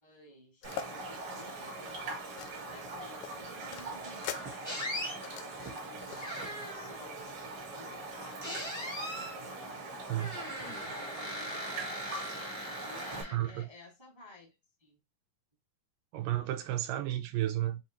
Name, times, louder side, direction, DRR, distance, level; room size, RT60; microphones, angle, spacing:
voice 1, 0.0-2.0 2.7-7.4 7.7-9.8 10.6-12.3 12.8-14.5 14.8-15.0, left 1 dB, 25° right, 0.5 m, -54 dB
sound 1, 0.6-0.9 1.4-2.9 3.2-6.3, left 10 dB, 90° left, 2.5 m, -44 dB
Raindrop, 0.6-13.2, right 2 dB, 50° right, 1.8 m, -42 dB
sound 2, 4.6-5.2 6.2-6.9 8.4-9.4 10.2-13.6, equal, 25° left, 0.5 m, -39 dB
voice 2, 13.3-13.7 16.1-17.8, right 14 dB, 80° right, 2.0 m, -32 dB
6.2 x 2.6 x 2.9 m
omnidirectional pair, 4.1 m